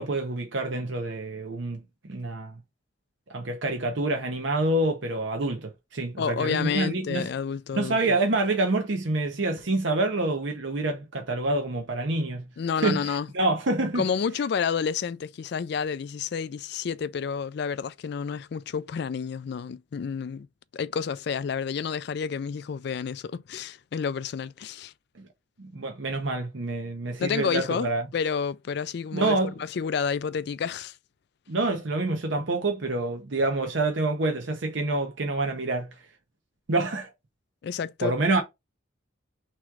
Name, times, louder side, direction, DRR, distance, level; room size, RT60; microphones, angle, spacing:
voice 1, 0.0-2.6 3.3-7.3 7.7-12.5 12.8-14.0 25.2-25.3 25.6-28.1 29.1-29.5 31.5-35.9 36.7-37.1 38.0-38.4, right 2 dB, 65° right, 0.8 m, -27 dB
voice 2, 6.2-8.2 12.6-13.3 13.9-20.5 20.7-24.9 27.2-31.0 37.6-38.2, left 6 dB, 55° left, 0.3 m, -30 dB
3.6 x 3.1 x 4.6 m
head